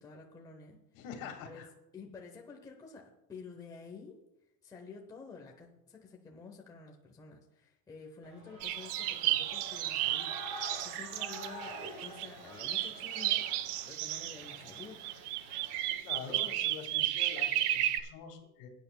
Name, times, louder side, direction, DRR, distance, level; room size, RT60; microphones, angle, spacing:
voice 1, 0.0-0.8 1.3-1.6 1.9-4.2 4.6-13.5 13.9-15.1, left 4 dB, 10° left, 0 dB, 0.7 m, -50 dB
voice 2, 0.9-1.7 15.8-18.7, left 6 dB, 65° left, 4 dB, 2.1 m, -45 dB
Shout / Cheering, 8.2-16.0, right 1 dB, 45° right, 4.4 m, -48 dB
sound 1, 8.6-12.3 12.6-18.0, right 14 dB, 80° right, 0.8 m, -33 dB
18.5 x 9.2 x 2.2 m, 0.86 s
cardioid pair, 165°, 45 cm